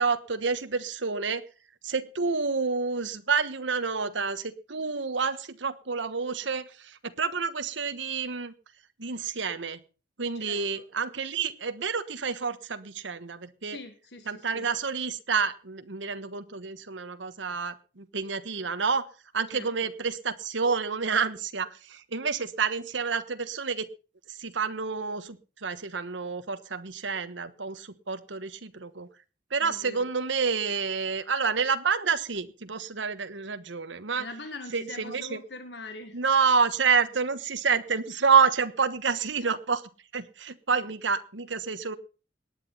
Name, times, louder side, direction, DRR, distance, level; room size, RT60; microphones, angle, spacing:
voice 1, 0.0-1.4 1.8-8.5 9.0-9.8 10.2-13.8 14.3-19.1 19.3-23.9 24.4-29.1 29.5-34.3 34.7-35.4 36.1-39.8 40.1-42.0, right 5 dB, 85° right, 11 dB, 1.3 m, -28 dB
voice 2, 10.3-10.8 13.6-14.7 19.5-19.9 29.6-30.1 34.2-36.2 40.7-40.8, left 2 dB, 65° left, 8 dB, 1.6 m, -43 dB
18.5 x 10.0 x 5.5 m, 0.35 s
head